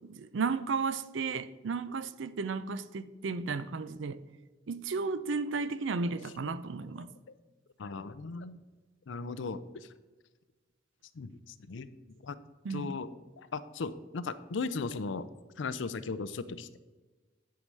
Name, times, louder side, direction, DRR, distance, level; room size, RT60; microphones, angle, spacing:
voice 1, 0.0-4.2 4.7-7.1 12.6-12.9, right 4 dB, 65° right, 0.5 m, -34 dB
voice 2, 7.8-8.6 9.1-9.9 11.2-11.9 12.2-12.4 12.7-13.1 13.4-15.3 15.6-16.8, left 4 dB, 65° left, 0.5 m, -37 dB
10.5 x 4.8 x 5.4 m
head